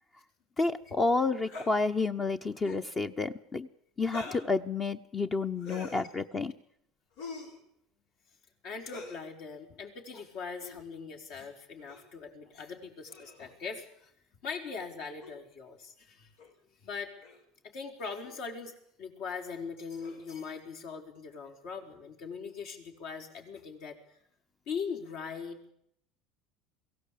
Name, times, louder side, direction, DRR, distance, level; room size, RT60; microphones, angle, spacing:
voice 1, 0.6-3.7 4.0-6.5, left 3 dB, 25° left, 8 dB, 0.9 m, -30 dB
sound 1, 1.4-1.7 2.5-2.9 4.0-4.5 5.6-6.1 7.2-7.6 8.8-9.2 10.5-10.8 11.9-12.1 13.1-13.5 15.2-15.3 16.4-16.5 17.2-17.4 18.2-18.4 20.0-20.4, left 4 dB, 85° left, 5.9 m, -45 dB
voice 2, 8.6-14.1 14.4-16.3 16.8-17.1 17.6-24.2 24.7-25.7, left 5 dB, 65° left, 3 dB, 4.8 m, -41 dB
22.5 x 16.5 x 8.6 m, 0.73 s
supercardioid pair, 120°, 0 cm